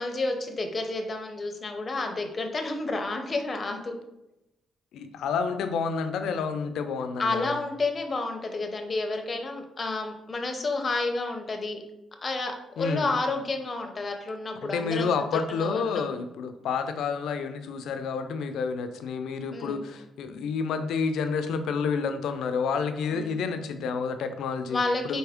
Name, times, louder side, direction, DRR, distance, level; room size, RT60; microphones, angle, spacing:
voice 1, 0.0-3.9 7.2-11.8 12.2-15.1 15.6-16.0 19.5-19.9 23.1-23.4 24.7-25.2, left 3 dB, 30° left, 4 dB, 0.6 m, -30 dB
voice 2, 4.9-7.6 12.8-13.1 14.6-24.8 25.0-25.2, left 5 dB, 85° left, 8 dB, 0.4 m, -29 dB
4.2 x 3.4 x 3.5 m, 0.90 s
cardioid pair, 130°, 0 cm